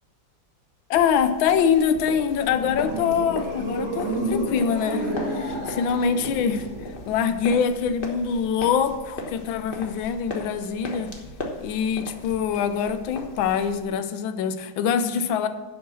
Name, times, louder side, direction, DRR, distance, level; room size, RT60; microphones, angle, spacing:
voice 1, 0.9-6.6 7.1-11.1 11.6-15.5, left 7 dB, 80° left, 10 dB, 1.5 m, -24 dB
sound 1, 0.9-13.8, left 2 dB, 30° left, 1.2 m, -39 dB
sound 2, 2.0-7.3, right 1 dB, 30° right, 2.3 m, -31 dB
11.0 x 6.2 x 6.1 m, 1.2 s
omnidirectional pair, 2.1 m